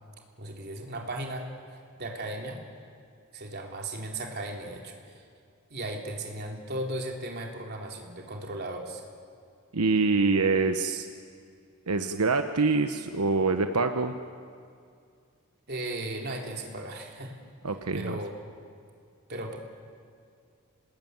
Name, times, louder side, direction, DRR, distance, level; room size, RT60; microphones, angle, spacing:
voice 1, 0.4-2.6 3.3-5.2 5.7-9.0 15.7-17.4 17.9-18.3 19.3-19.6, right 1 dB, 45° right, 1 dB, 3.4 m, -36 dB
voice 2, 9.7-11.1 11.9-14.1 17.6-18.2, right 3 dB, 85° right, 7 dB, 1.1 m, -25 dB
27.0 x 20.5 x 9.5 m, 2.3 s
head